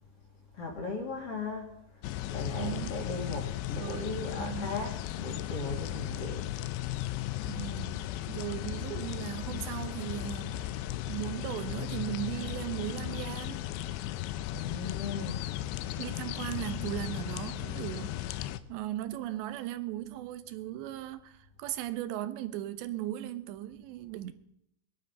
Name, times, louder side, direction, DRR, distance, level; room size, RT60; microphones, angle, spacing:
voice 1, 0.5-2.0 2.3-6.4 14.5-15.4, left 3 dB, 40° left, 2.7 m, -37 dB
sound 1, 2.0-18.6, left 14 dB, 80° left, 2.8 m, -36 dB
voice 2, 2.6-3.0 3.8-4.7 7.5-10.7 11.1-13.7 16.0-24.3, right 13 dB, 85° right, 3.1 m, -38 dB
20.5 x 11.5 x 5.4 m
omnidirectional pair, 5.0 m